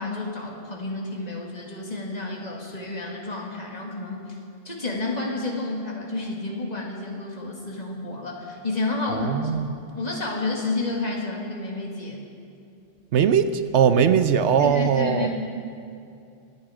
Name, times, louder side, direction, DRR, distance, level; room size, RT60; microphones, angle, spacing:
voice 1, 0.0-4.4 4.6-9.5 10.0-12.2 14.6-15.3, left 2 dB, 35° left, -1 dB, 2.2 m, -30 dB
voice 2, 9.1-9.7 13.1-15.3, right 8 dB, 75° right, 11 dB, 1.0 m, -20 dB
25.0 x 10.0 x 4.9 m, 2.5 s
omnidirectional pair, 1.2 m